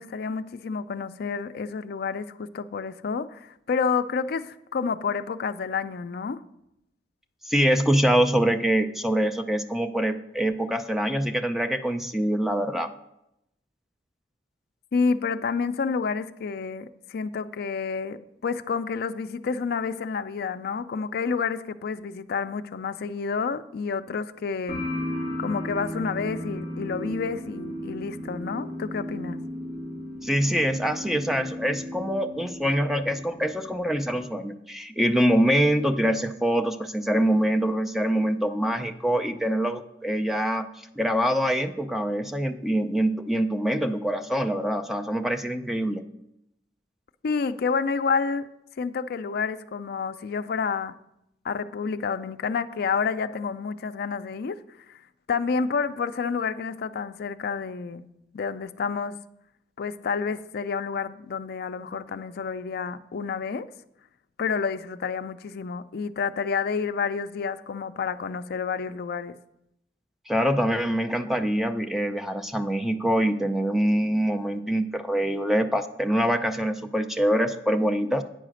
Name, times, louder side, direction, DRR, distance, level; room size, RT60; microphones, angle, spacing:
voice 1, 0.0-6.4 14.9-24.8 25.4-29.5 47.2-48.5 48.8-50.9 51.4-54.6 55.3-58.1 58.3-59.2 59.8-63.7 64.4-69.4, left 5 dB, 55° left, 0.4 m, -29 dB
voice 2, 7.5-12.9 30.2-40.7 41.0-46.0 70.3-78.2, equal, ahead, 0.4 m, -24 dB
sound 1, 24.7-34.2, equal, 45° right, 2.6 m, -35 dB
9.1 x 4.9 x 6.3 m
head